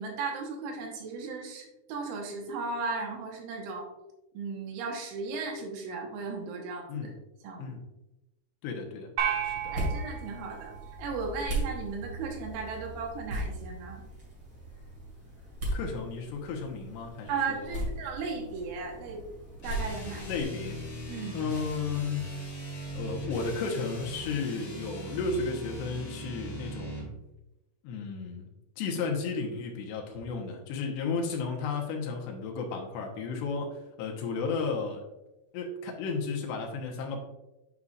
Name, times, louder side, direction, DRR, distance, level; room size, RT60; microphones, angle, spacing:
voice 1, 0.0-3.9 4.4-7.1 7.4-7.7 9.7-10.7 11.0-14.0 17.3-19.2 19.6-20.3 21.1-21.4, right 4 dB, 85° right, 0 dB, 3.7 m, -36 dB
voice 2, 8.6-9.1 9.4-9.7 15.7-17.8 20.3-20.8 21.3-22.4 22.9-27.1 27.8-28.5 28.8-35.0 35.5-37.2, left 4 dB, 75° left, 1 dB, 2.8 m, -33 dB
sound 1, 9.2-11.7, right 8 dB, 65° right, 3.3 m, -34 dB
sound 2, 9.3-20.4, right 1 dB, 40° right, 1.8 m, -38 dB
sound 3, 19.6-27.1, equal, 30° left, 2.0 m, -40 dB
9.6 x 5.5 x 2.5 m, 0.96 s
omnidirectional pair, 5.4 m